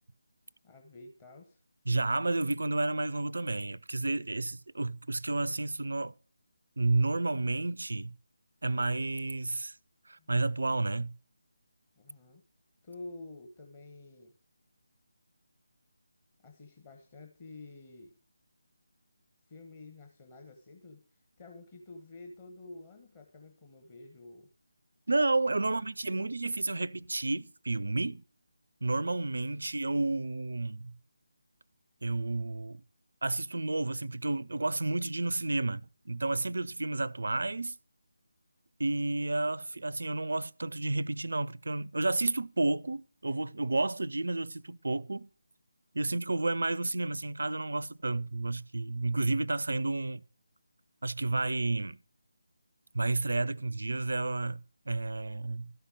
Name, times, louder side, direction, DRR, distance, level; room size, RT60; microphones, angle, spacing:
voice 1, 0.6-1.6 10.2-10.3 12.0-12.4 12.8-14.3 16.4-18.1 19.4-24.5 25.6-25.9 26.1-26.4 29.6-29.7 39.7-39.9, left 2 dB, 25° left, 1.1 m, -50 dB
voice 2, 1.9-6.1 6.8-8.1 8.6-9.8 10.1-11.1 25.1-28.2 28.8-30.9 32.0-32.8 33.2-37.8 38.8-45.3 45.9-50.2 51.0-52.0 52.9-55.7, right 2 dB, 60° right, 0.4 m, -31 dB
12.5 x 5.7 x 6.3 m
figure-of-eight pair, 155°, 0 cm